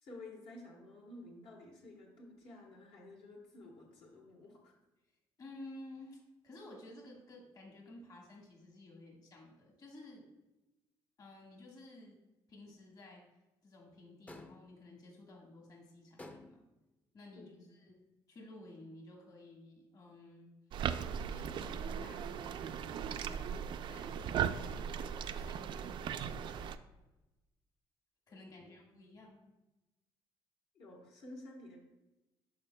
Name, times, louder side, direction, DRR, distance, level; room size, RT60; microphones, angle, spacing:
voice 1, 0.0-4.7 17.3-17.7 28.3-29.1 30.7-31.8, left 2 dB, 70° left, -1 dB, 1.3 m, -53 dB
voice 2, 5.4-10.3 11.2-12.2 12.5-13.2 13.6-16.6 17.1-18.0 18.3-20.5 21.3-26.8 28.3-29.4, left 2 dB, 40° left, 0 dB, 1.5 m, -54 dB
sound 1, 14.3-14.8 16.2-16.8, left 2 dB, 15° left, 0.5 m, -52 dB
sound 2, 20.7-26.8, right 8 dB, 55° right, 0.4 m, -38 dB
12.5 x 4.5 x 2.2 m, 1.0 s
cardioid pair, 130°, 10 cm